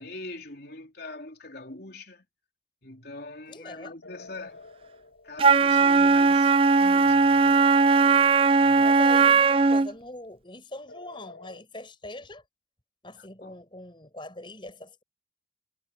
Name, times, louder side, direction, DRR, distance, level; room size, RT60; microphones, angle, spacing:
voice 1, 0.0-2.3 2.8-4.7 5.2-7.7 8.6-8.8 13.2-13.6, left 2 dB, 55° left, 3.9 m, -43 dB
voice 2, 3.5-3.9 8.8-12.4 13.0-15.0, left 1 dB, 25° left, 5.4 m, -42 dB
sound 1, 4.0-6.1 7.5-9.5 10.9-11.6, left 3 dB, 85° left, 3.5 m, -49 dB
Wind instrument woodwind instrument, 5.4-9.9, right 4 dB, 30° right, 0.4 m, -19 dB
head